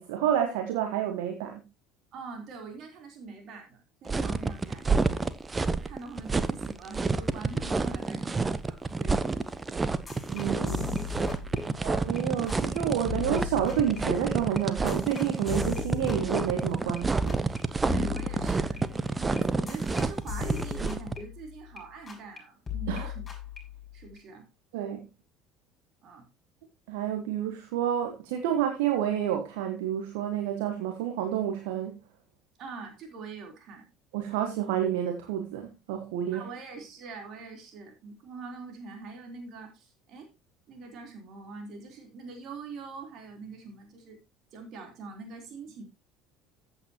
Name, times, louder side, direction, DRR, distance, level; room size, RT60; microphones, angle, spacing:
voice 1, 0.0-1.6 10.3-10.9 11.8-17.4 22.9-23.1 24.7-25.1 26.9-31.9 34.1-36.5, right 10 dB, 65° right, 1.4 m, -29 dB
voice 2, 2.1-5.1 5.6-9.8 11.6-11.9 17.8-23.3 23.9-24.4 26.0-26.3 32.6-33.9 36.3-40.3 40.7-44.2 44.5-45.8, right 4 dB, 50° right, 3.7 m, -44 dB
sound 1, 4.1-21.1, right 3 dB, 20° right, 0.9 m, -29 dB
sound 2, 10.1-12.2 12.5-12.8 13.1-17.0 17.3-17.6 17.9-21.8 22.1-22.4 22.7-24.2, left 10 dB, 25° left, 5.9 m, -39 dB
14.5 x 8.2 x 3.0 m
figure-of-eight pair, 60°, 0 cm